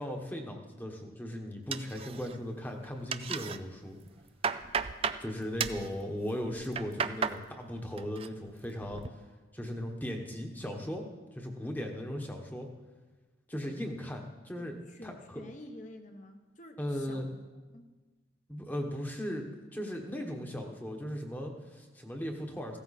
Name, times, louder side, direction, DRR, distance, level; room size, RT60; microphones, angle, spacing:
voice 1, 0.0-4.0 5.2-9.2 9.5-12.7 13.5-14.7 15.0-15.4 16.8-17.2 18.5-19.5 19.7-22.8, equal, 10° left, 3 dB, 1.3 m, -37 dB
sound 1, 1.7-2.5 2.8-3.6 4.0-5.2 5.6-5.9 6.5-7.4 7.8-8.3 8.6-9.1, right 6 dB, 30° right, 0.4 m, -34 dB
voice 2, 14.5-17.4 17.7-17.9, left 1 dB, 40° left, 5 dB, 1.2 m, -49 dB
16.0 x 13.5 x 4.2 m, 1.3 s
head